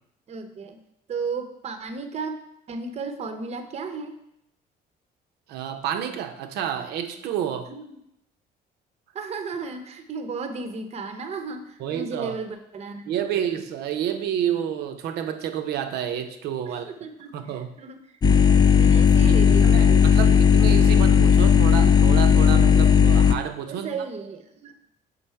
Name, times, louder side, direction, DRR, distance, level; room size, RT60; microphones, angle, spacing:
voice 1, 0.3-0.8 1.1-2.4 2.7-4.2 7.7-8.0 9.1-13.1 13.4-13.5 16.7-17.4 17.8-18.0 18.3-20.2 23.7-24.7, right 4 dB, 40° right, 8 dB, 0.7 m, -34 dB
voice 2, 5.5-7.7 11.8-12.4 13.1-16.9 17.3-17.8 19.2-19.4 19.6-23.9, right 9 dB, 75° right, 7 dB, 0.6 m, -29 dB
sound 1, 18.2-23.3, left 7 dB, 25° left, 0.3 m, -16 dB
5.5 x 3.9 x 4.5 m, 0.79 s
cardioid pair, 110°, 17 cm